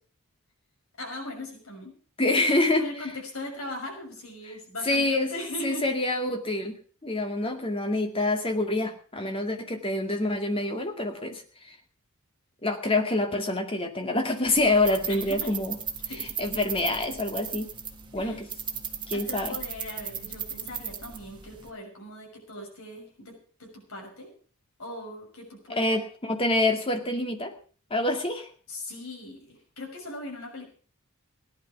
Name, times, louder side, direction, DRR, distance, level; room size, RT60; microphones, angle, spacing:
voice 1, 1.0-1.9 2.3-2.4 2.8-5.9 15.1-15.5 16.1-16.3 18.2-18.4 19.1-23.3 23.6-24.3 24.8-26.0 28.7-30.7, left 1 dB, 70° left, 1 dB, 6.5 m, -39 dB
voice 2, 2.2-2.8 4.4-4.5 4.8-5.3 5.6-11.4 11.7-11.8 12.6-15.8 16.1-17.7 18.1-18.5 19.1-19.6 25.7-27.5 27.9-28.5, left 2 dB, 25° left, 4 dB, 2.3 m, -26 dB
sound 1, 14.4-21.7, right 7 dB, 20° right, 1.7 m, -37 dB
17.0 x 11.0 x 6.1 m, 0.43 s
head